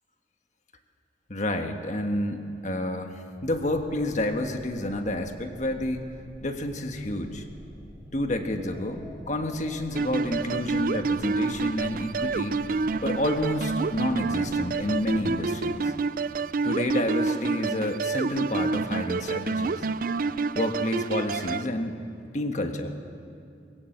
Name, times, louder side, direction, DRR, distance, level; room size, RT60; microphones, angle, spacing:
voice 1, 1.3-6.1 6.4-7.4 8.1-12.6 13.0-15.9 16.6-19.8 20.5-22.0 22.3-22.9, left 1 dB, 40° left, 5 dB, 1.4 m, -29 dB
sound 1, 3.4-15.4, equal, ahead, 4.2 m, -47 dB
sound 2, 10.0-21.7, right 4 dB, 50° right, 0.4 m, -28 dB
21.0 x 17.0 x 7.9 m, 2.4 s
head